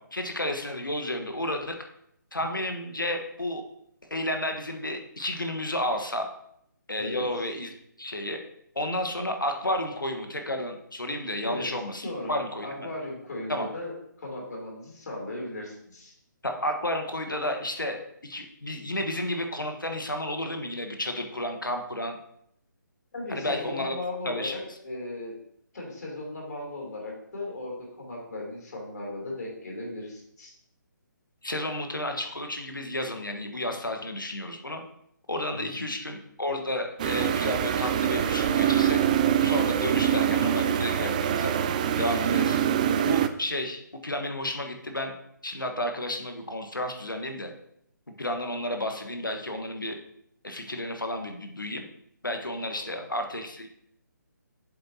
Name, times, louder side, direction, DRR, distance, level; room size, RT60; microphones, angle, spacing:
voice 1, 0.0-1.8 2.3-3.6 4.1-6.3 6.9-7.7 8.0-8.4 8.7-12.9 13.5-13.7 16.4-22.2 23.3-24.0 24.2-24.6 31.4-34.8 35.3-39.0 39.4-41.5 42.0-42.6 43.0-45.1 45.4-47.5 48.2-50.0 50.4-51.8 52.2-53.7, left 1 dB, 90° left, 5 dB, 1.3 m, -32 dB
voice 2, 12.0-12.3 12.6-16.1 23.1-25.3 25.7-30.5 35.6-35.9 52.7-53.1, left 2 dB, 60° left, -1 dB, 3.1 m, -37 dB
sound 1, 37.0-43.3, right 9 dB, 25° right, 0.3 m, -24 dB
7.6 x 7.3 x 2.8 m, 0.72 s
figure-of-eight pair, 145°, 11 cm